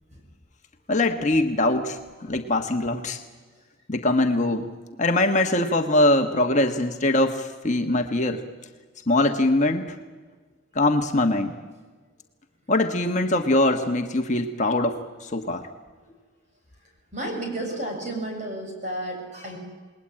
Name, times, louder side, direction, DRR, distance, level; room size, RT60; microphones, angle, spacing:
voice 1, 0.9-3.2 3.9-4.7 5.0-8.4 9.1-9.9 10.7-11.5 12.7-15.7, left 1 dB, 35° left, 4 dB, 1.4 m, -22 dB
voice 2, 17.1-19.6, right 1 dB, 35° right, 1 dB, 7.6 m, -32 dB
29.0 x 20.5 x 8.8 m, 1.4 s
head